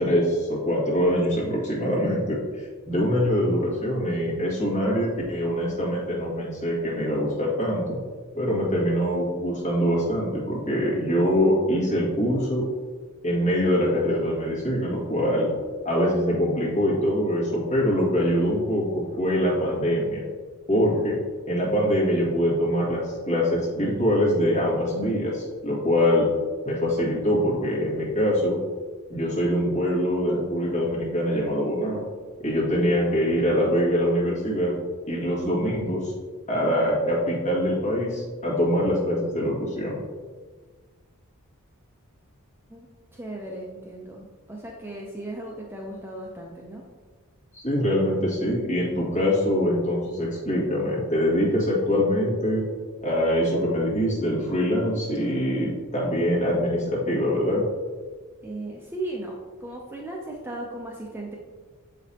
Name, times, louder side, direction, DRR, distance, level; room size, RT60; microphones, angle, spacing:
voice 1, 0.0-8.0 8.3-12.6 13.2-15.5 15.9-20.2 20.7-21.2 21.5-26.3 26.7-28.6 29.1-32.0 32.4-34.7 35.1-36.1 36.5-40.0 47.5-52.6 53.0-57.6, equal, 35° left, -5 dB, 1.9 m, -24 dB
voice 2, 43.1-46.8 58.4-61.4, right 1 dB, 10° right, -1 dB, 0.5 m, -36 dB
7.1 x 5.0 x 2.8 m, 1.4 s
head